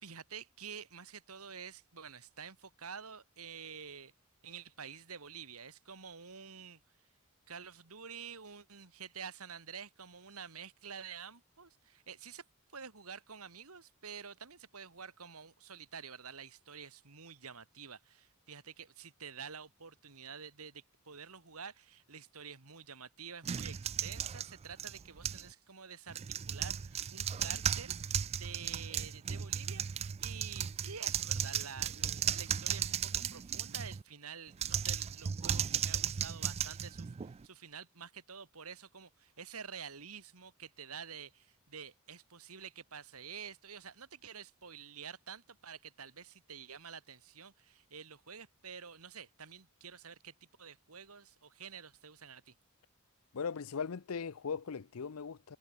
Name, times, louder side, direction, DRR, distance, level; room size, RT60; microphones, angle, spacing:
voice 1, 0.0-4.1 4.4-6.8 7.5-12.4 12.7-26.2 26.5-50.3 50.6-52.5, right 6 dB, 80° right, 2.6 m, -49 dB
sound 1, 23.4-25.5 26.1-34.0 34.5-37.4, right 8 dB, 30° right, 0.3 m, -36 dB
voice 2, 53.3-55.6, left 6 dB, 75° left, 0.6 m, -39 dB
head